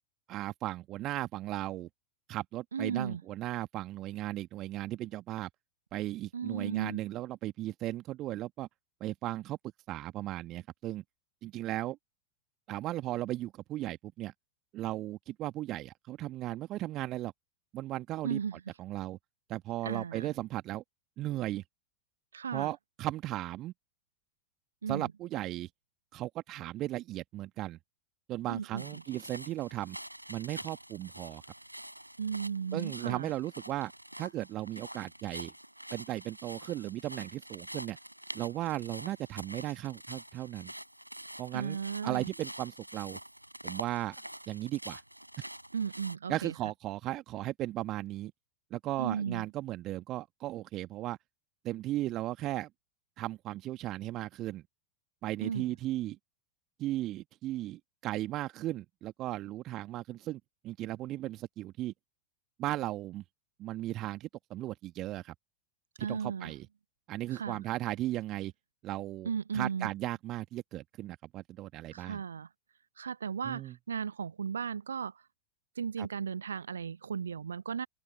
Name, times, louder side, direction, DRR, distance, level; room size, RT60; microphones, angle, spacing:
voice 1, 0.3-1.9 2.3-5.5 5.9-8.7 9.0-9.6 9.9-11.0 11.4-12.0 12.7-14.3 14.7-17.3 17.7-19.2 19.5-20.8 21.2-21.6 22.5-23.7 24.9-25.7 26.1-27.8 28.3-30.0 30.3-31.4 32.7-33.9 34.2-35.5 35.9-38.0 38.3-40.7 41.4-43.2 43.6-44.2 44.5-45.0 45.4-45.5 46.3-48.3 48.7-51.2 51.6-52.7 53.2-54.6 55.2-56.2 56.8-61.9 62.6-63.2 63.6-65.3 66.0-66.7 67.1-68.5 68.8-72.2 73.4-73.7 76.0-76.1, right 15 dB, 35° right, 1.4 m, -36 dB
voice 2, 2.7-3.2 6.3-7.0 18.2-18.6 19.8-20.3 22.3-22.7 24.8-25.1 28.5-29.0 32.2-33.3 41.5-42.3 45.7-46.5 49.0-49.4 55.4-55.7 66.0-66.5 67.3-67.6 69.2-69.9 71.9-72.5 73.0-75.2 75.8-77.9, right 7 dB, 70° right, 0.3 m, -35 dB
sound 1, 28.8-46.2, right 1 dB, 90° right, 5.2 m, -46 dB
figure-of-eight pair, 90°, 0 cm